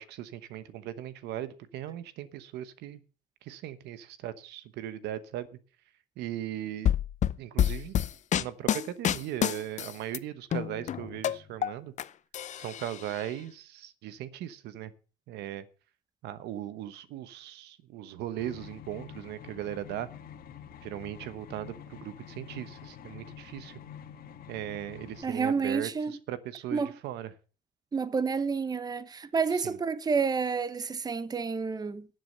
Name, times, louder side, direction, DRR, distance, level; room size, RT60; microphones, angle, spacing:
voice 1, 0.0-3.0 3.4-5.5 6.2-6.9 7.4-8.0 8.3-11.9 12.5-14.9 15.3-15.7 16.2-20.1 20.8-23.8 24.5-27.3 29.5-29.8, right 12 dB, 80° right, 1.1 m, -38 dB
sound 1, 6.9-10.2 10.5-12.0 12.3-13.2, left 10 dB, 45° left, 0.6 m, -28 dB
sound 2, 18.4-25.2, left 8 dB, 60° left, 1.6 m, -47 dB
voice 2, 25.2-26.2 26.7-26.9 27.9-32.1, right 5 dB, 25° right, 0.9 m, -29 dB
12.0 x 7.8 x 6.5 m
cardioid pair, 110°, 17 cm